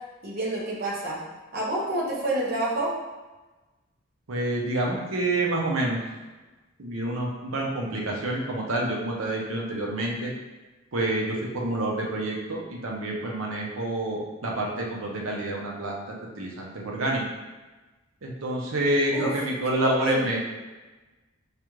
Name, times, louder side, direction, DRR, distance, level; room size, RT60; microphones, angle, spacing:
voice 1, 0.2-1.2 1.5-2.9 19.1-19.3 20.0-20.2, right 1 dB, 50° right, -4 dB, 0.9 m, -28 dB
voice 2, 4.3-6.0 6.8-10.3 10.9-16.0 16.4-17.2 18.2-20.4, right 1 dB, 90° right, -2 dB, 0.8 m, -28 dB
4.8 x 2.4 x 3.1 m, 1.2 s
head